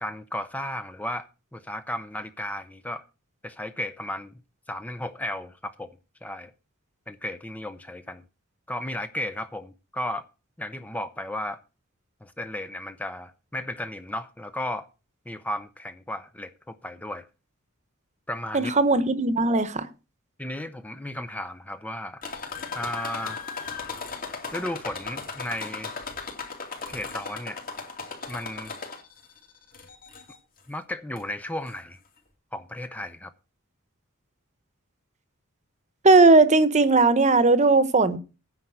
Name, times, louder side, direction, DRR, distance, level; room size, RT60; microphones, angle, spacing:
voice 1, 0.0-1.3 1.5-3.0 3.4-4.4 4.7-6.5 7.1-8.2 8.7-10.2 10.6-11.6 12.2-14.9 15.3-17.3 18.3-18.7 20.4-22.2 22.7-23.4 24.5-25.9 26.9-27.6 28.3-28.7 30.7-32.0 32.5-33.3, left 1 dB, 5° left, 0.6 m, -34 dB
voice 2, 18.5-19.9 36.0-38.2, right 3 dB, 35° right, 1.1 m, -18 dB
sound 1, 22.2-29.2 29.7-30.4 31.2-31.3 31.7-31.8, left 4 dB, 40° left, 2.9 m, -36 dB
9.8 x 5.8 x 7.9 m
head